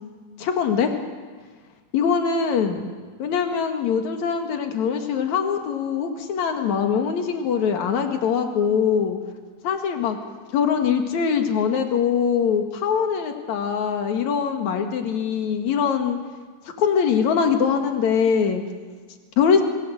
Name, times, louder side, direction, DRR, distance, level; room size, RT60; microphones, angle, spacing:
voice 1, 0.4-0.9 1.9-2.9 3.2-9.2 9.6-10.2 10.5-16.2 16.8-18.6 19.4-19.6, left 7 dB, 55° left, 5 dB, 2.9 m, -22 dB
24.5 x 16.5 x 7.8 m, 1.5 s
omnidirectional pair, 4.3 m